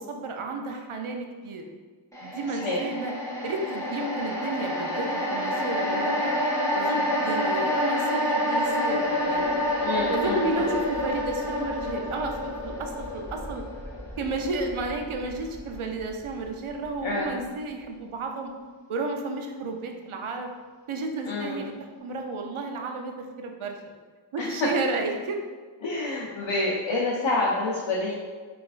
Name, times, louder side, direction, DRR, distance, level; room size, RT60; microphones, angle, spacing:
voice 1, 0.0-1.6 2.2-3.1 3.4-6.4 6.7-9.5 10.1-13.6 14.2-18.5 18.9-20.5 20.9-21.7 22.0-23.8 24.3-25.4, right 3 dB, 80° right, 3 dB, 0.6 m, -32 dB
sound 1, 2.1-16.5 16.8-17.0, left 1 dB, 5° left, 1.1 m, -28 dB
voice 2, 2.5-2.8 9.8-10.7 17.0-17.3 21.2-21.6 24.4-24.7 25.8-28.1, left 2 dB, 70° left, -4 dB, 0.6 m, -28 dB
5.6 x 2.5 x 2.4 m, 1.5 s
wide cardioid pair, 45°, 48 cm